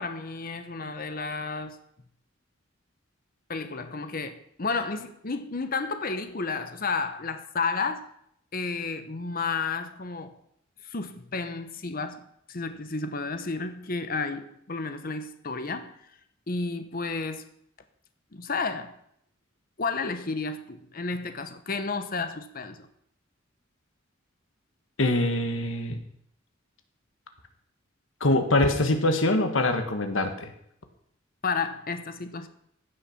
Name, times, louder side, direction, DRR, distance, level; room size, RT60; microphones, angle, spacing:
voice 1, 0.0-1.8 3.5-8.0 8.5-10.4 10.8-12.2 12.5-15.9 16.5-17.4 18.3-18.9 19.8-22.8 31.4-32.5, left 4 dB, 45° left, 9 dB, 1.0 m, -32 dB
voice 2, 25.0-26.0 28.2-30.5, left 2 dB, 80° left, 6 dB, 1.5 m, -24 dB
15.5 x 6.7 x 5.8 m, 0.72 s
head